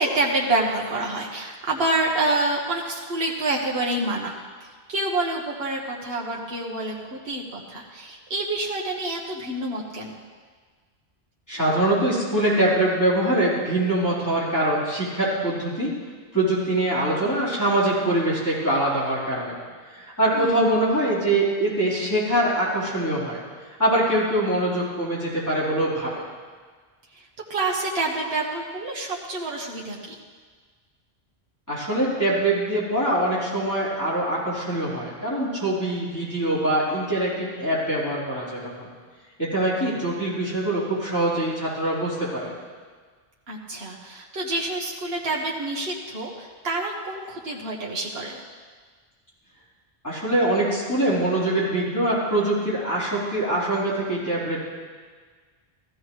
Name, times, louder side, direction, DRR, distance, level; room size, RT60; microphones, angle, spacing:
voice 1, 0.0-10.2 20.3-20.6 27.1-30.1 43.5-48.4, right 2 dB, 70° right, -2 dB, 1.5 m, -27 dB
voice 2, 11.5-15.9 16.3-19.5 19.9-23.4 23.8-26.1 31.7-38.9 39.4-42.5 50.0-54.6, right 1 dB, 15° left, -9 dB, 4.1 m, -23 dB
15.5 x 14.5 x 3.2 m, 1.5 s
omnidirectional pair, 1.1 m